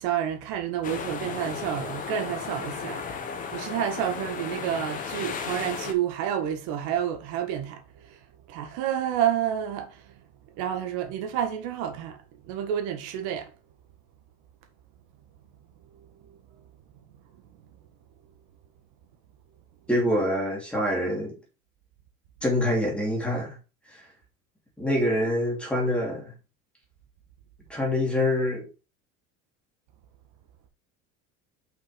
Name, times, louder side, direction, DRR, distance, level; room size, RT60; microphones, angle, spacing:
voice 1, 0.0-8.2 8.5-10.2 10.6-12.2 12.5-13.5 16.3-16.4, right 10 dB, 70° right, 1.8 m, -30 dB
sound 1, 0.8-5.9, left 6 dB, 25° left, 1.1 m, -35 dB
voice 2, 19.9-21.4 22.4-23.6 23.9-24.0 24.8-26.3 27.7-28.6, left 1 dB, 5° left, 2.7 m, -25 dB
5.8 x 5.8 x 5.2 m
cardioid pair, 175°, 30 cm